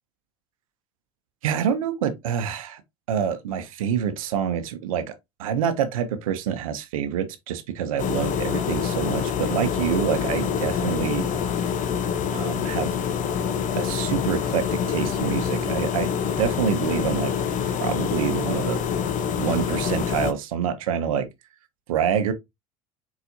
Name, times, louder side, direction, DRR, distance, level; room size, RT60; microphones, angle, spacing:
voice 1, 1.4-2.8 3.1-5.1 5.4-11.3 12.3-13.0 13.8-16.1 16.4-17.3 17.7-18.8 19.4-21.3 21.9-22.3, right 8 dB, 90° right, 0.7 m, -26 dB
sound 1, 8.0-20.3, left 7 dB, 45° left, 0.8 m, -26 dB
4.7 x 4.1 x 2.6 m
hypercardioid pair, 80°, 17 cm